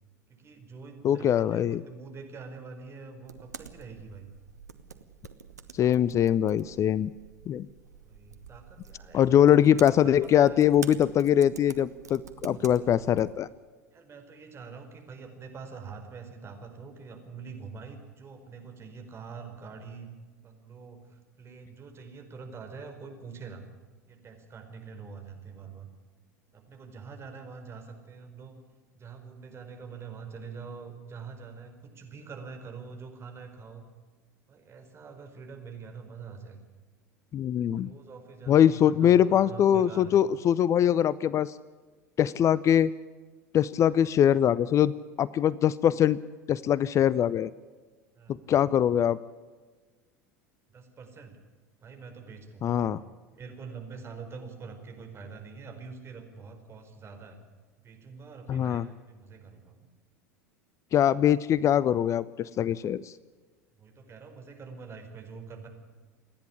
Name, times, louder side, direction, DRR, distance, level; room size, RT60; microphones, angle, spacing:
voice 1, 0.3-4.3 8.0-10.6 12.5-13.0 13.9-20.1 20.4-23.7 24.1-25.9 26.5-28.6 28.9-33.9 34.5-36.6 37.7-40.2 48.2-48.5 50.7-51.4 51.8-52.9 53.3-57.4 57.8-59.9 63.7-65.7, right 5 dB, 30° right, 4 dB, 4.7 m, -45 dB
voice 2, 1.0-1.8 5.7-7.1 7.5-7.7 9.1-13.5 37.3-37.9 38.5-41.6 42.2-42.9 43.5-44.9 45.2-46.2 46.5-47.5 48.5-49.2 52.6-53.0 58.5-58.9 60.9-63.1, left 10 dB, 35° left, 20 dB, 0.6 m, -22 dB
sound 1, 3.2-13.3, right 5 dB, 85° right, 1.3 m, -47 dB
28.0 x 10.5 x 10.0 m, 1.4 s
figure-of-eight pair, 80°, 9 cm